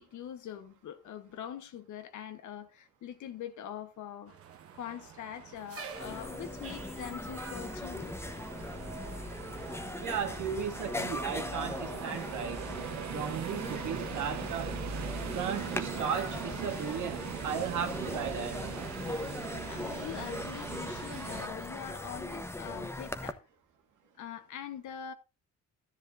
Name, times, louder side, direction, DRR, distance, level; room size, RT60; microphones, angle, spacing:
voice 1, 0.0-4.4 4.7-8.1 19.7-23.4 24.2-25.1, left 9 dB, 75° left, 1.2 m, -43 dB
sound 1, 4.3-9.9, right 6 dB, 50° right, 1.4 m, -49 dB
sound 2, 4.4-21.5, right 11 dB, 65° right, 0.9 m, -42 dB
sound 3, 5.6-5.7 5.8-23.3, left 1 dB, 10° left, 1.0 m, -39 dB
voice 2, 10.0-12.6 13.1-14.8 15.3-18.6, right 7 dB, 80° right, 2.1 m, -35 dB
13.5 x 10.5 x 2.6 m
cardioid pair, 90°, 30 cm